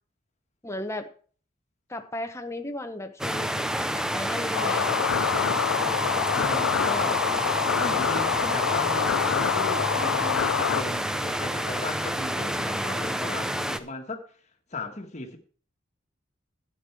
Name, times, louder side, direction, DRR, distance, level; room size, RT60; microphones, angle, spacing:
voice 1, 0.6-1.1 1.9-4.9, left 1 dB, 15° left, 1.0 m, -35 dB
sound 1, 3.2-13.8, equal, 5° right, 0.5 m, -29 dB
sound 2, 4.5-10.8, left 8 dB, 85° left, 0.4 m, -26 dB
voice 2, 6.3-7.3 7.8-14.2 14.7-15.4, left 2 dB, 35° left, 1.6 m, -36 dB
Waves surf, 7.5-13.0, right 1 dB, 25° right, 3.9 m, -45 dB
11.5 x 8.7 x 4.6 m
head